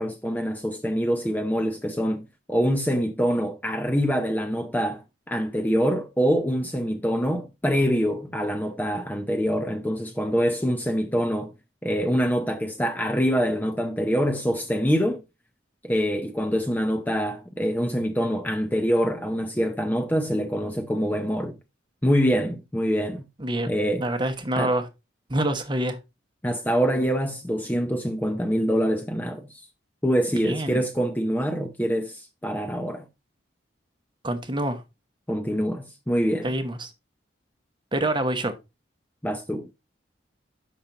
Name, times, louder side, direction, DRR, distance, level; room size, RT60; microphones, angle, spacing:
voice 1, 0.0-2.2 2.5-11.5 11.8-15.2 15.8-21.6 22.0-23.3 23.7-24.0 24.6-24.7 26.4-29.6 30.0-33.1 35.3-36.5 39.2-39.7, equal, 10° left, 0.7 m, -25 dB
voice 2, 23.4-23.7 24.0-24.9 25.3-26.0 30.4-30.8 34.2-34.8 36.4-36.9 37.9-38.5, right 1 dB, 25° right, 0.9 m, -26 dB
7.3 x 5.8 x 3.8 m
head